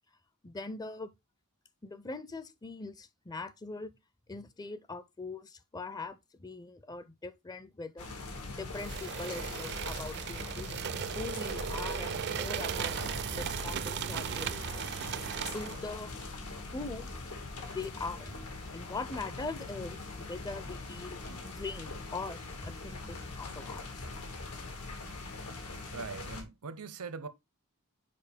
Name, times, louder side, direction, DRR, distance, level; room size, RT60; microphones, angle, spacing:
voice 1, 0.4-1.1 1.8-3.9 4.3-8.1 8.5-13.0 13.4-14.7 15.5-16.2 16.6-17.1 17.7-18.4 18.7-21.2 21.4-24.1, left 3 dB, 15° left, 0.4 m, -42 dB
sound 1, 8.0-26.4, left 3 dB, 85° left, 1.9 m, -42 dB
sound 2, 8.7-15.9, right 8 dB, 50° right, 0.4 m, -37 dB
voice 2, 25.9-27.3, right 5 dB, 80° right, 0.8 m, -41 dB
6.7 x 4.9 x 3.4 m
head